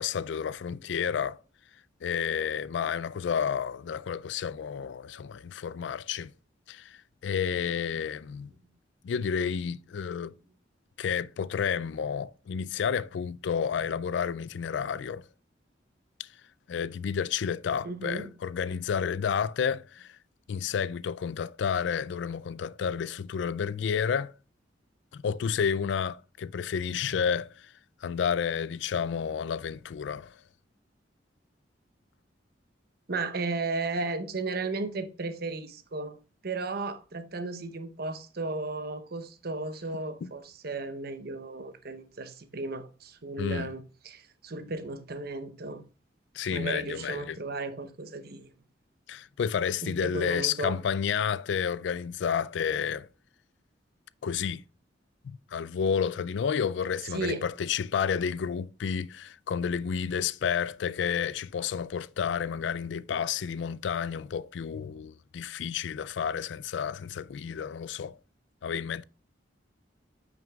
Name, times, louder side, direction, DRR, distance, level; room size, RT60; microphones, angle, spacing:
voice 1, 0.0-1.4 2.0-6.3 6.7-8.5 9.0-10.3 11.0-15.2 16.2-16.3 16.7-20.2 20.5-24.3 25.1-27.7 28.0-30.3 40.2-40.3 43.4-43.7 46.3-47.4 49.1-53.1 54.2-54.6 55.2-68.2 68.6-69.0, left 7 dB, 75° left, 0.3 m, -30 dB
voice 2, 17.8-18.3 33.1-36.1 36.4-45.8 46.5-48.5 49.8-50.8 57.1-57.4, right 3 dB, 55° right, 0.8 m, -35 dB
8.9 x 6.0 x 2.4 m
head